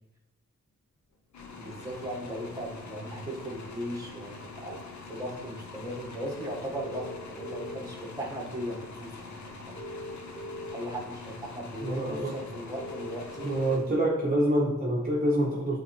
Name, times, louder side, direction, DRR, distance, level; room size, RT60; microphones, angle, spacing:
sound 1, 1.3-14.3, left 4 dB, 70° left, 0.9 m, -45 dB
voice 1, 1.6-4.8 5.1-9.8 10.7-13.5, equal, 10° right, -3 dB, 1.7 m, -38 dB
sound 2, 4.7-4.8 6.7-8.0 9.7-10.8 12.7-13.8, left 1 dB, 45° left, 1.3 m, -40 dB
voice 2, 11.8-12.4 13.4-15.8, right 1 dB, 30° right, -3 dB, 1.0 m, -26 dB
8.2 x 3.8 x 3.3 m, 1.0 s
wide cardioid pair, 70°, 30 cm